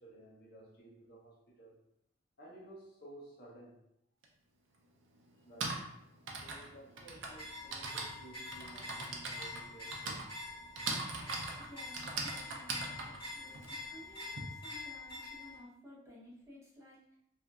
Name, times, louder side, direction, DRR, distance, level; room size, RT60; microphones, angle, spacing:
voice 1, 0.0-1.8 2.4-3.8 5.4-10.3, right 2 dB, 50° left, -4 dB, 0.7 m, -55 dB
Typing, 4.2-4.3 5.3-14.4, right 3 dB, 70° right, 0.5 m, -41 dB
sound 1, 7.3-15.6, left 2 dB, 25° left, 1.3 m, -46 dB
voice 2, 11.6-17.2, left 1 dB, 15° right, -7 dB, 0.7 m, -55 dB
2.8 x 2.5 x 2.3 m, 0.77 s
head